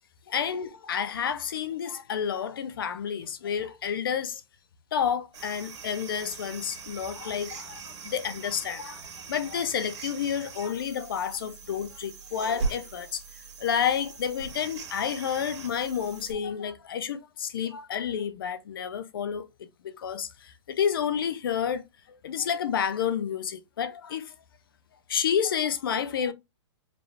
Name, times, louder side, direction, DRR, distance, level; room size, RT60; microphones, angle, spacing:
voice 1, 0.3-4.4 4.9-9.0 9.3-13.2 13.6-19.5 19.8-20.3 20.7-21.8 22.1-24.3 25.1-26.3, left 8 dB, 50° left, 0.5 m, -30 dB
sound 1, 5.3-16.3, right 4 dB, 75° right, 1.7 m, -40 dB
4.9 x 2.3 x 3.2 m
hypercardioid pair, 175°, 15 cm